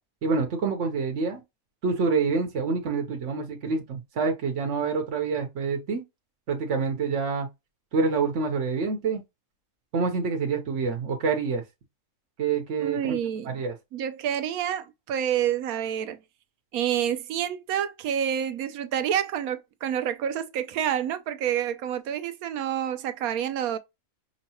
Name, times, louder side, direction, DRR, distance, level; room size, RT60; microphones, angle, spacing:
voice 1, 0.2-1.4 1.8-6.0 6.5-7.5 7.9-9.2 9.9-11.6 12.4-13.7, right 4 dB, 60° right, 1.2 m, -27 dB
voice 2, 12.8-13.6 13.9-16.2 16.7-23.8, right 9 dB, 90° right, 1.1 m, -28 dB
5.4 x 2.3 x 2.8 m
omnidirectional pair, 1.5 m